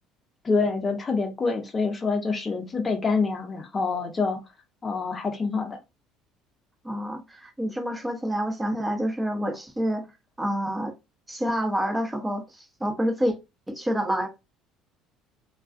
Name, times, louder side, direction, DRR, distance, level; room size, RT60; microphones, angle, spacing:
voice 1, 0.4-4.4 4.8-5.8, left 4 dB, 30° left, 0.6 m, -26 dB
voice 2, 6.8-10.1 10.4-10.9 11.3-13.4 13.7-14.3, equal, 10° right, 0.7 m, -28 dB
2.3 x 2.3 x 2.4 m
hypercardioid pair, 65°, 0 cm